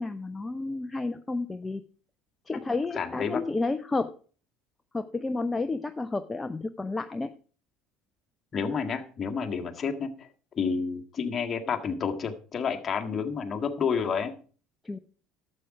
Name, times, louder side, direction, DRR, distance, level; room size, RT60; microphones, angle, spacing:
voice 1, 0.0-1.8 2.5-4.1 4.9-7.3 14.8-15.0, left 3 dB, 20° left, 9 dB, 0.7 m, -31 dB
voice 2, 3.0-3.4 8.5-10.3 10.5-14.3, left 6 dB, 35° left, 5 dB, 1.7 m, -30 dB
12.0 x 7.7 x 4.9 m, 0.39 s
hypercardioid pair, 65°, 0 cm